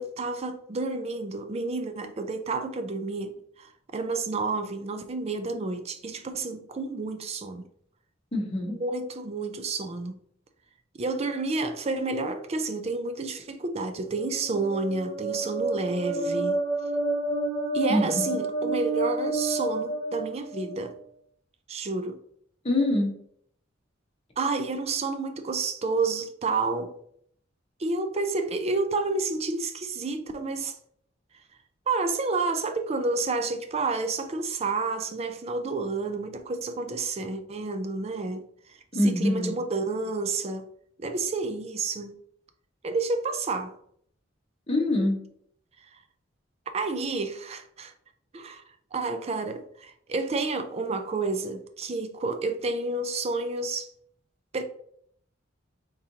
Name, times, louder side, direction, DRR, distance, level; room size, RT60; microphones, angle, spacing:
voice 1, 0.0-3.3 3.6-7.6 8.7-10.2 10.9-16.6 17.7-20.9 21.7-22.2 24.4-26.9 27.8-30.8 31.9-38.4 38.7-40.6 41.0-42.2 42.8-43.7 46.7-47.9 48.3-48.6 48.9-53.9 54.5-54.6, right 3 dB, 30° right, 0.4 m, -30 dB
voice 2, 8.3-8.8 17.9-18.3 22.6-23.1 38.9-39.5 44.7-45.2, left 1 dB, 30° left, 1.0 m, -24 dB
sound 1, 14.1-20.9, right 2 dB, 70° right, 1.3 m, -30 dB
4.2 x 3.7 x 2.7 m
head